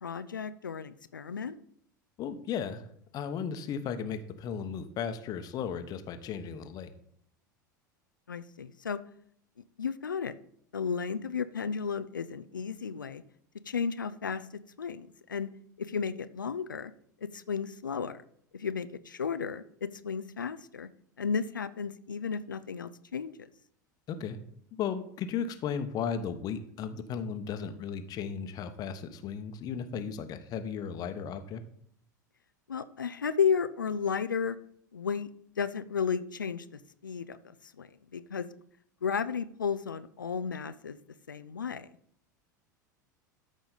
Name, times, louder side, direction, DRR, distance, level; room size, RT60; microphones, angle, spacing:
voice 1, 0.0-1.6 8.3-9.0 9.8-10.3 10.7-13.2 13.7-14.5 14.8-15.5 15.8-16.9 17.2-18.2 18.5-20.9 21.2-23.5 32.7-34.6 34.9-35.3 35.6-37.4 37.8-38.5 39.0-41.0 41.3-41.9, left 6 dB, 85° left, 13 dB, 0.4 m, -33 dB
voice 2, 2.2-2.9 3.1-6.9 24.1-24.4 24.7-31.6, left 7 dB, 40° left, 9 dB, 1.0 m, -35 dB
13.0 x 5.2 x 4.0 m, 0.67 s
figure-of-eight pair, 80°, 10 cm